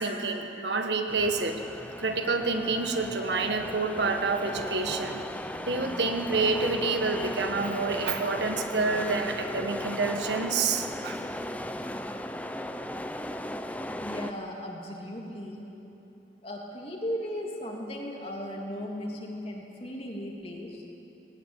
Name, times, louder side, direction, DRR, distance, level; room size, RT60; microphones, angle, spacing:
voice 1, 0.0-1.6 2.0-5.2 5.7-11.2, right 3 dB, 80° right, 5 dB, 1.6 m, -28 dB
sound 1, 1.1-14.3, left 1 dB, 10° left, 0.7 m, -36 dB
voice 2, 14.0-15.7 16.4-20.8, equal, 35° left, -1 dB, 3.0 m, -36 dB
20.0 x 18.0 x 9.1 m, 3.0 s
head